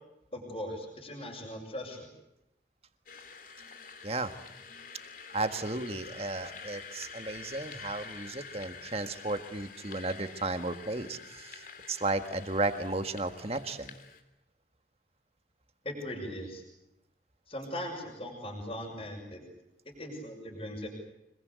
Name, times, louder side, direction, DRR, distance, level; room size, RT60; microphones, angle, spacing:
voice 1, 0.3-2.1 15.8-16.6 17.5-19.4 19.9-20.9, left 1 dB, 30° left, -1 dB, 6.2 m, -39 dB
sound 1, 3.1-14.2, left 5 dB, 50° left, 2.8 m, -48 dB
voice 2, 5.3-13.9, right 2 dB, 35° right, 8 dB, 1.7 m, -34 dB
26.0 x 22.0 x 8.3 m, 0.88 s
head